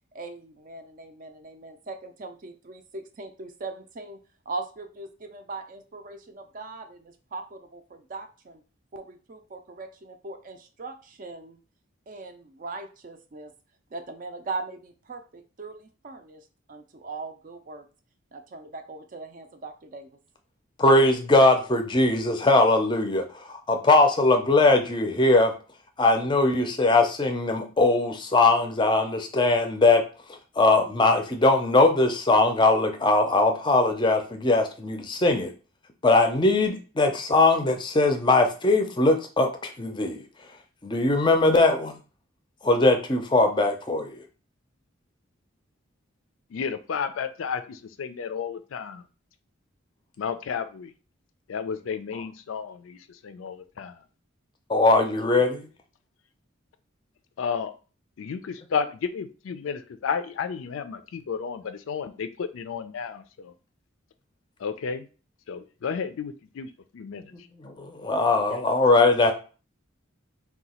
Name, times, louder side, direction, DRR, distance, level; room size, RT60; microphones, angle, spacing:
voice 1, 0.1-4.2 4.5-8.6 8.9-11.6 12.1-13.5 13.9-16.4 16.7-17.8 18.3-20.1, right 3 dB, 40° right, 0.4 m, -40 dB
voice 2, 20.8-25.5 26.0-35.5 36.0-40.2 40.8-42.0 42.6-44.2 52.1-52.2 54.7-55.7 67.3-69.3, left 2 dB, 25° left, 0.5 m, -21 dB
voice 3, 46.5-49.0 50.2-50.9 51.5-53.0 53.2-53.9 57.4-57.7 58.2-63.2 64.6-65.0 65.5-66.7 66.9-67.2, left 6 dB, 80° left, 0.4 m, -32 dB
2.8 x 2.3 x 4.2 m
head